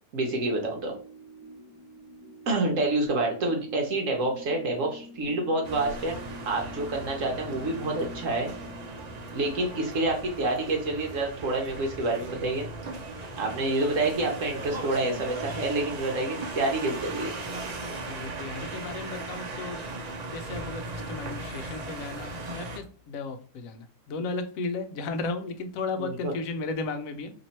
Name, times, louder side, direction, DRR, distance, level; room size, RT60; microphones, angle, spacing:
voice 1, 0.1-0.9 2.5-6.2 6.5-8.5 9.3-12.7 13.4-17.3 26.0-26.3, right 2 dB, 60° right, 2 dB, 1.0 m, -28 dB
sound 1, 0.9-9.6, left 1 dB, 5° right, 0.7 m, -47 dB
sound 2, 5.6-22.8, right 2 dB, 90° right, 0.3 m, -38 dB
voice 2, 18.0-19.8 20.3-27.3, left 3 dB, 70° left, 8 dB, 0.9 m, -34 dB
3.0 x 2.9 x 4.1 m, 0.41 s
omnidirectional pair, 1.6 m